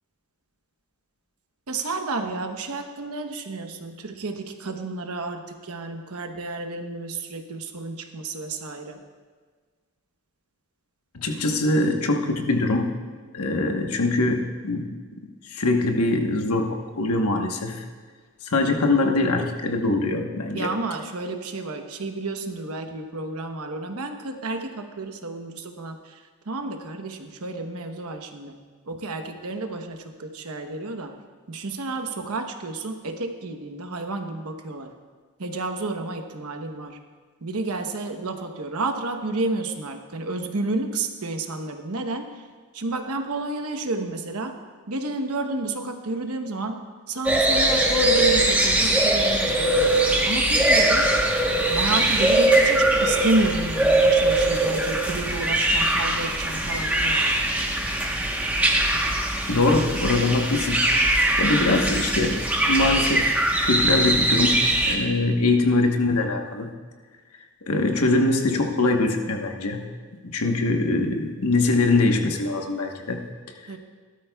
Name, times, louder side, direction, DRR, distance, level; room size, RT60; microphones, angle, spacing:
voice 1, 1.7-9.0 20.5-26.2 26.5-28.6 28.9-31.2 31.5-34.9 35.4-37.0 37.4-42.3 42.7-44.6 44.9-46.8 47.1-49.9 50.2-51.1 51.7-57.2 73.7-73.8, right 2 dB, 85° right, 5 dB, 1.0 m, -30 dB
voice 2, 11.1-12.9 13.3-15.0 15.5-17.8 18.5-20.7 59.5-60.8 61.1-66.7 67.7-69.8 70.2-73.2, left 2 dB, 85° left, 3 dB, 1.2 m, -23 dB
sound 1, 47.2-64.9, right 1 dB, 5° right, 1.1 m, -21 dB
17.0 x 12.5 x 2.3 m, 1.5 s
head